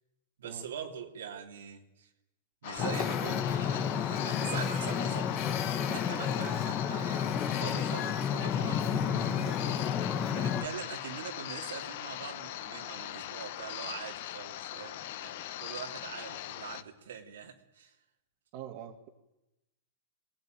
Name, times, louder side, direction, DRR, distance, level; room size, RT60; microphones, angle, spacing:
voice 1, 0.4-2.1 2.6-5.3 5.8-17.9, right 7 dB, 90° right, 3.0 m, -43 dB
sound 1, 2.6-16.8, left 13 dB, 55° left, 1.0 m, -40 dB
Wind / Ocean, 2.8-10.7, left 8 dB, 30° left, 1.9 m, -31 dB
voice 2, 18.5-19.1, right 10 dB, 45° right, 2.2 m, -44 dB
23.5 x 18.5 x 9.3 m
supercardioid pair, 150°, 0 cm